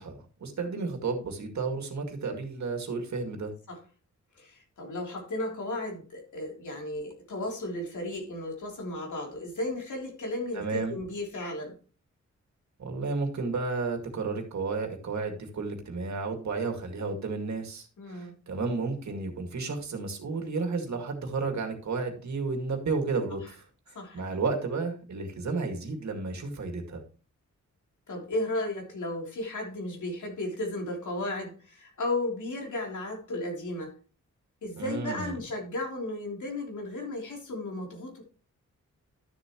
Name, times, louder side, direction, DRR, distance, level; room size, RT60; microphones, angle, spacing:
voice 1, 0.0-3.5 10.5-10.9 12.8-27.0 34.8-35.3, right 4 dB, 70° right, 4 dB, 2.2 m, -32 dB
voice 2, 4.3-11.7 18.0-18.3 23.9-24.4 28.1-33.9 34.6-38.2, left 1 dB, 85° left, 0 dB, 3.3 m, -34 dB
12.0 x 7.2 x 3.0 m, 0.37 s
wide cardioid pair, 125°, 29 cm